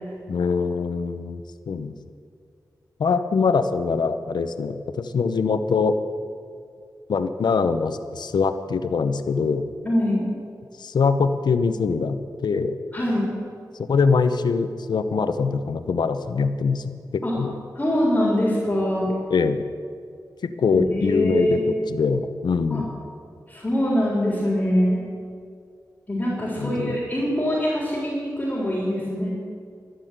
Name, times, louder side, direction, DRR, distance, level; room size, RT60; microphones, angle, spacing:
voice 1, 0.3-1.9 3.0-6.0 7.1-9.7 10.8-12.8 13.8-17.5 19.3-19.6 20.4-22.9 26.6-27.0, left 5 dB, 85° left, 10 dB, 0.8 m, -23 dB
voice 2, 9.8-10.3 12.9-13.3 17.2-17.4 17.7-19.1 20.7-21.7 22.7-22.9 23.5-25.0 26.1-29.3, equal, 20° left, -7 dB, 3.9 m, -23 dB
12.0 x 11.5 x 8.0 m, 2.3 s
wide cardioid pair, 75°, 7 cm